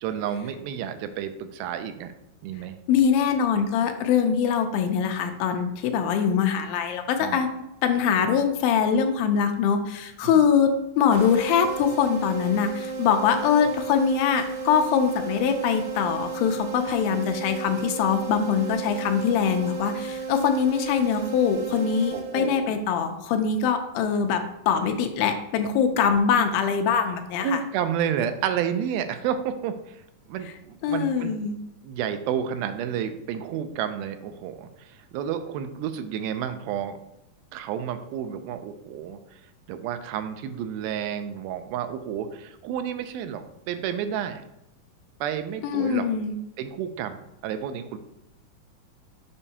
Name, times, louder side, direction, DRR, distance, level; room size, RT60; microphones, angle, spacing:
voice 1, 0.0-2.1 2.4-2.8 7.2-7.4 10.2-10.3 22.1-22.7 25.6-25.7 27.4-30.0 30.3-31.3 31.8-37.0 37.5-39.2 39.7-44.4 45.2-46.1 46.6-48.0, right 8 dB, 85° right, 9 dB, 2.4 m, -30 dB
voice 2, 2.9-7.5 7.8-10.7 11.0-27.6 30.8-31.6 45.6-46.3, left 7 dB, 80° left, 6 dB, 2.3 m, -23 dB
sound 1, 11.1-22.8, right 5 dB, 60° right, 1.5 m, -34 dB
7.0 x 5.4 x 2.8 m, 0.87 s
omnidirectional pair, 4.2 m